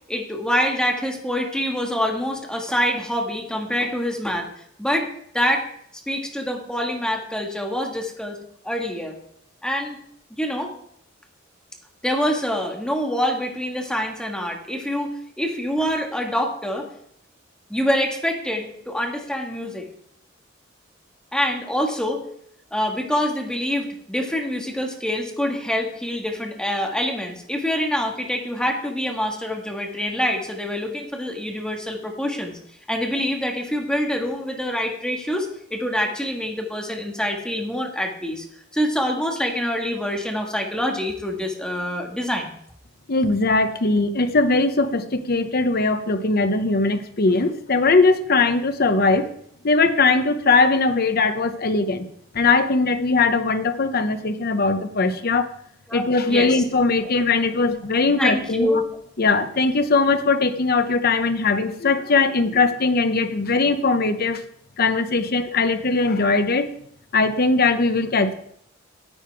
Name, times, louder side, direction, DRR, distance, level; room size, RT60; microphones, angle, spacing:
voice 1, 0.1-4.5 4.8-5.1 5.3-5.6 6.1-8.4 8.6-9.2 9.6-10.0 10.3-10.7 12.0-16.9 17.7-19.9 21.3-22.2 22.7-32.6 32.9-38.4 38.7-42.6 55.9-56.6 57.0-57.1 58.2-58.8, equal, 5° left, 1 dB, 1.6 m, -25 dB
voice 2, 43.1-49.3 49.6-52.1 52.3-55.5 55.9-58.8 59.2-64.4 64.8-66.7 67.1-68.4, left 3 dB, 50° left, 9 dB, 0.9 m, -20 dB
9.8 x 8.8 x 4.6 m, 0.68 s
head